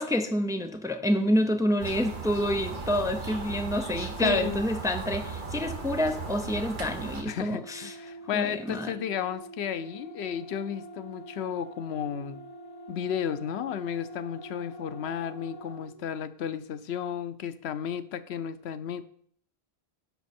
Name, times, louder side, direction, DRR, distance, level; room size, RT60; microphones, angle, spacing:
voice 1, 0.0-7.9 8.3-8.9, left 1 dB, 5° right, 6 dB, 0.5 m, -28 dB
sound 1, 1.8-7.2, right 4 dB, 50° right, 1.3 m, -36 dB
voice 2, 4.2-4.6 7.2-12.4 12.9-19.0, left 9 dB, 85° left, 13 dB, 0.9 m, -33 dB
sound 2, 6.9-16.0, right 1 dB, 25° left, 1.1 m, -45 dB
10.5 x 6.1 x 4.3 m, 0.62 s
omnidirectional pair, 1.1 m